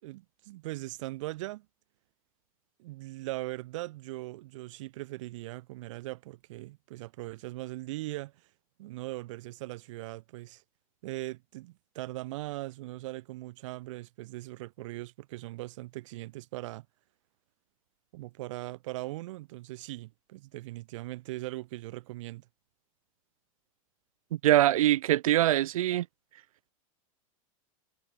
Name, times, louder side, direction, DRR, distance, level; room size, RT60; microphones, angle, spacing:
voice 1, 0.0-1.7 2.8-8.3 8.8-10.6 11.0-16.9 18.1-22.5, right 18 dB, 65° right, 5.6 m, -40 dB
voice 2, 24.4-26.0, right 13 dB, 85° right, 1.2 m, -23 dB
supercardioid pair, 145°, 17 cm